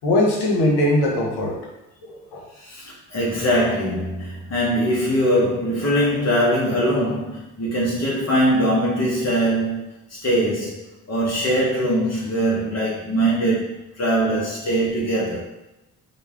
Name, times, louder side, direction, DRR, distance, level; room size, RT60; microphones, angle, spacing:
voice 1, 0.0-1.6 2.1-2.4, left 1 dB, 65° left, -2 dB, 0.9 m, -20 dB
voice 2, 2.6-10.8 11.1-15.4, equal, 35° left, -5 dB, 0.9 m, -22 dB
2.2 x 2.1 x 3.4 m, 0.95 s
hypercardioid pair, 45°, 43 cm